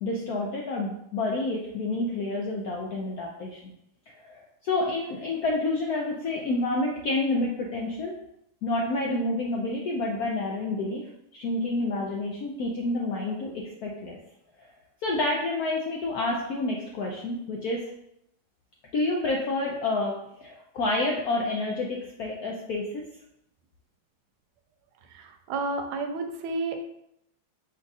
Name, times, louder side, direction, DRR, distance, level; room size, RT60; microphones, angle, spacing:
voice 1, 0.0-3.7 4.1-8.1 8.6-11.0 11.3-14.2 15.0-17.9 18.9-23.0, left 2 dB, 75° left, -1 dB, 0.8 m, -29 dB
voice 2, 25.1-26.8, right 3 dB, 85° right, 5 dB, 1.4 m, -31 dB
5.2 x 2.3 x 3.9 m, 0.77 s
omnidirectional pair, 2.2 m